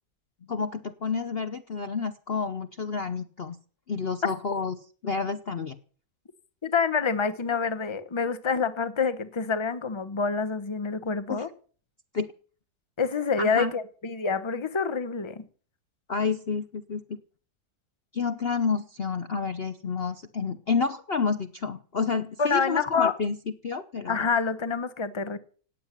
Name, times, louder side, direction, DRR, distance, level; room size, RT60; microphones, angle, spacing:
voice 1, 0.5-3.6 3.9-4.8 5.0-5.8 11.3-11.4 12.1-12.3 13.4-13.7 16.1-17.2 18.1-23.4 23.6-24.3, left 5 dB, 45° left, 1.0 m, -29 dB
voice 2, 6.6-11.5 13.0-15.4 22.4-23.1 24.1-25.4, left 5 dB, 20° left, 1.0 m, -27 dB
17.5 x 7.7 x 9.8 m
omnidirectional pair, 1.7 m